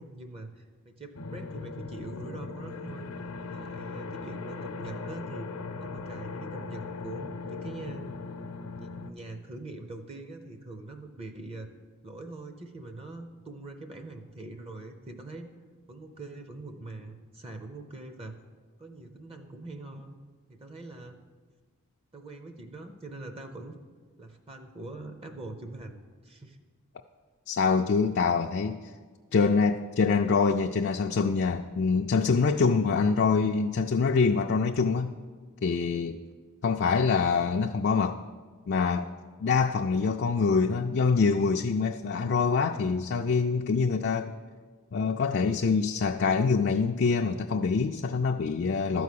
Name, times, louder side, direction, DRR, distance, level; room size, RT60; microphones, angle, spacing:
voice 1, 0.0-3.1 3.5-5.5 5.8-8.1 8.6-11.7 12.0-15.5 15.9-18.4 18.8-20.1 20.5-21.2 22.1-23.8 24.2-26.6, right 2 dB, 25° right, 6 dB, 0.6 m, -43 dB
sound 1, 1.1-9.1, left 4 dB, 80° left, 0.7 m, -39 dB
voice 2, 27.5-28.9 29.3-35.1 35.6-36.2 36.6-38.2 38.7-39.1 39.4-44.3 44.9-49.0, left 5 dB, 50° left, 3 dB, 0.4 m, -25 dB
12.5 x 4.7 x 8.4 m, 1.5 s
head